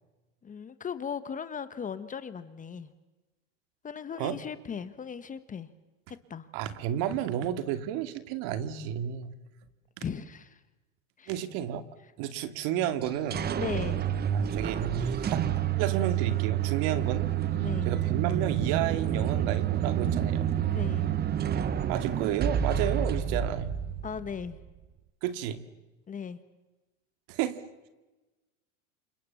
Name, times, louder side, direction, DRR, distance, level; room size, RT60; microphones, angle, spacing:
voice 1, 0.4-2.9 3.8-5.7 6.3-6.5 10.0-10.6 11.2-11.4 13.6-14.1 17.6-17.9 20.7-21.1 24.0-24.6 26.1-26.4, left 7 dB, 20° left, 1.3 m, -37 dB
voice 2, 6.5-9.4 10.0-10.1 11.3-11.8 12.2-13.5 14.3-17.4 17.9-20.5 21.8-23.8 25.2-25.7 27.3-27.6, right 10 dB, 55° right, 2.3 m, -32 dB
sound 1, 13.0-24.7, right 10 dB, 25° right, 1.2 m, -29 dB
29.0 x 26.0 x 7.1 m
supercardioid pair, 125°, 39 cm